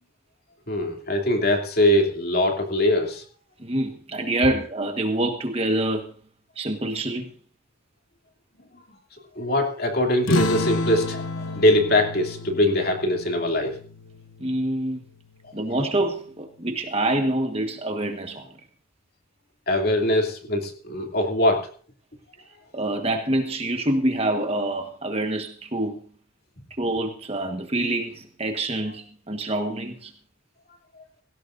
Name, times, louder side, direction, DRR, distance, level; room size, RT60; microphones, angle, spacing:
voice 1, 0.7-3.2 9.4-11.2 11.6-13.7 19.7-21.7, left 1 dB, 50° left, 2.8 m, -22 dB
voice 2, 3.6-6.1 6.6-7.3 14.4-15.0 15.5-18.5 22.7-26.0 26.8-30.1, right 1 dB, 30° right, 1.4 m, -26 dB
sound 1, 10.3-15.3, left 2 dB, 70° left, 1.1 m, -31 dB
17.5 x 17.0 x 2.6 m
head